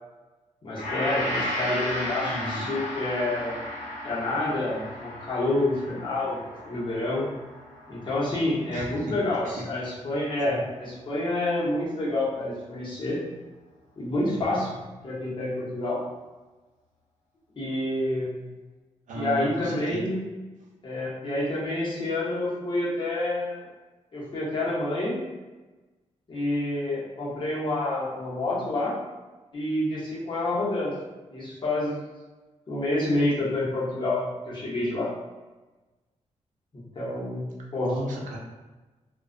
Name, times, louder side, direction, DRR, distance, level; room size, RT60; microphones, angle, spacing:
voice 1, 0.6-3.6 4.0-6.4 6.7-7.3 7.9-13.2 14.0-14.8 15.0-16.0 17.6-18.3 19.1-20.2 20.8-23.7 24.1-25.2 26.3-28.9 29.5-30.9 31.3-32.0 32.7-35.1 36.7-37.9, left 1 dB, 40° left, -7 dB, 0.9 m, -28 dB
Gong, 0.8-9.2 9.5-9.7, left 1 dB, 75° left, 0.9 m, -34 dB
voice 2, 2.2-2.7 8.7-8.9 9.4-9.5 10.4-10.6 19.1-20.0 37.8-38.4, right 1 dB, 85° right, -1 dB, 0.6 m, -34 dB
2.3 x 2.3 x 2.4 m, 1.2 s
cardioid pair, 110°, 13 cm